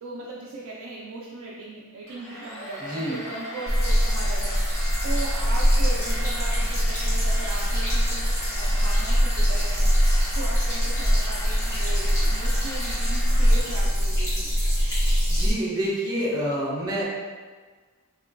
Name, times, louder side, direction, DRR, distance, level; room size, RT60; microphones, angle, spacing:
voice 1, 0.0-4.6 5.0-8.2 8.5-9.9 10.3-14.5, right 2 dB, 70° right, -5 dB, 0.4 m, -38 dB
Domestic sounds home sounds, 2.1-14.2, equal, 60° left, 1.1 m, -38 dB
voice 2, 2.8-3.2 15.3-17.0, equal, 20° right, -7 dB, 0.8 m, -27 dB
sound 1, 3.7-15.5, equal, 15° left, 1.0 m, -22 dB
2.9 x 2.8 x 2.5 m, 1.4 s
head